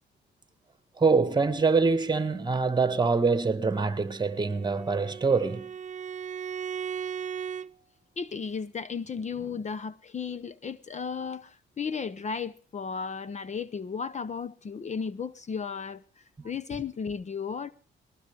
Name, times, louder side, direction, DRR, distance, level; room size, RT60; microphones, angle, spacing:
voice 1, 1.0-5.6 16.4-16.5, right 4 dB, 20° right, 1.7 m, -25 dB
Bowed string instrument, 4.2-7.7, right 8 dB, 40° right, 0.7 m, -37 dB
voice 2, 8.2-17.7, left 6 dB, 35° left, 0.8 m, -35 dB
20.5 x 19.5 x 3.4 m
cardioid pair, 90°, 20 cm